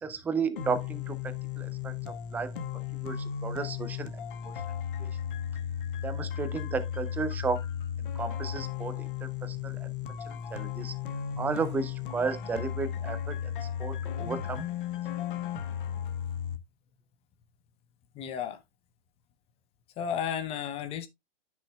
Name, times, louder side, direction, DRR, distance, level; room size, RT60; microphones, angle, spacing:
voice 1, 0.0-1.9 2.3-3.2 3.4-4.1 4.4-4.5 5.0-5.1 6.0-7.7 8.2-9.9 10.3-10.9 11.4-13.5 13.8-14.6, right 5 dB, 5° right, 0.4 m, -34 dB
sound 1, 0.6-16.6, left 9 dB, 55° left, 1.2 m, -35 dB
voice 2, 18.1-18.6 20.0-21.1, left 8 dB, 20° left, 0.7 m, -33 dB
10.5 x 6.2 x 2.2 m
hypercardioid pair, 130°, 31 cm